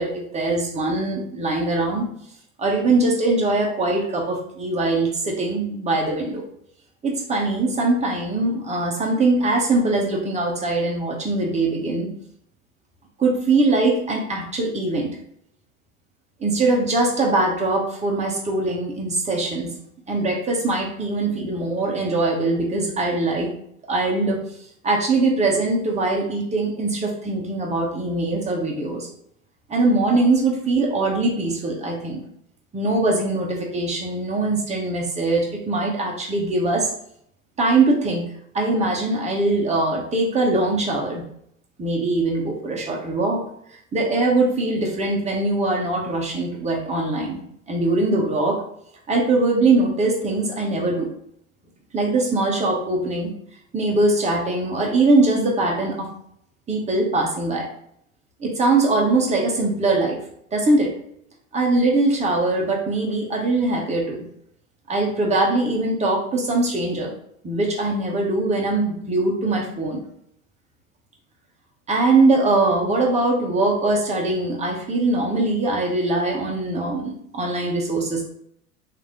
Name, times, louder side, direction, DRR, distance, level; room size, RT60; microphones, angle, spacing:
voice 1, 0.0-2.1 2.6-6.4 7.0-12.1 13.2-15.1 16.4-19.7 20.1-23.5 23.9-24.4 24.8-29.1 29.7-32.2 32.7-36.9 37.6-41.2 41.8-43.4 43.9-47.4 47.7-48.6 49.1-51.1 51.9-53.3 53.7-56.1 56.7-57.7 58.4-60.2 60.5-60.9 61.5-64.3 64.9-67.1 67.4-70.0 71.9-78.3, right 2 dB, 15° right, -1 dB, 1.0 m, -22 dB
3.2 x 2.8 x 3.7 m, 0.70 s
hypercardioid pair, 80°, 42 cm